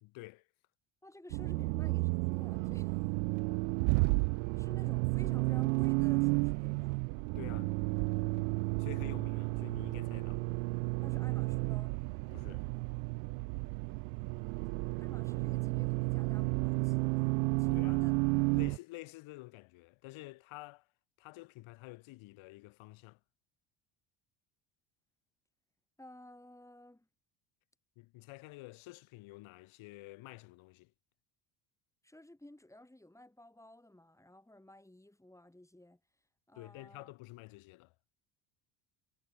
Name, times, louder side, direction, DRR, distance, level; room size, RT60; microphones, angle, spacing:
voice 1, 0.0-0.5 7.4-7.8 8.4-8.5 8.8-10.4 12.3-12.7 17.7-18.1 18.5-20.9 21.2-23.2 28.0-30.9 36.6-37.9, left 21 dB, 70° left, 2.0 m, -49 dB
voice 2, 1.0-3.0 4.6-7.1 11.0-12.0 15.0-18.2 26.0-27.1 32.0-36.0 36.5-37.1, left 1 dB, 5° left, 7.2 m, -54 dB
Accelerating revving vroom, 1.3-18.8, right 33 dB, 90° right, 1.1 m, -32 dB
supercardioid pair, 100°, 50 cm